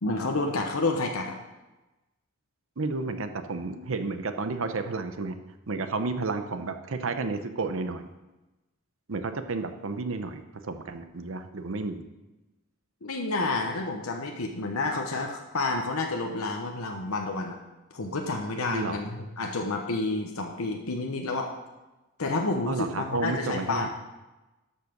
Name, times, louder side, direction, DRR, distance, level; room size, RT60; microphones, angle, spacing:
voice 1, 0.0-1.4 13.0-17.6 17.9-21.5 22.2-23.9, left 2 dB, 85° left, 2 dB, 1.0 m, -29 dB
voice 2, 2.8-5.4 5.7-8.0 9.1-12.0 18.7-19.0 22.7-23.9, right 3 dB, 70° right, 8 dB, 0.7 m, -31 dB
13.0 x 5.6 x 5.2 m, 1.1 s
head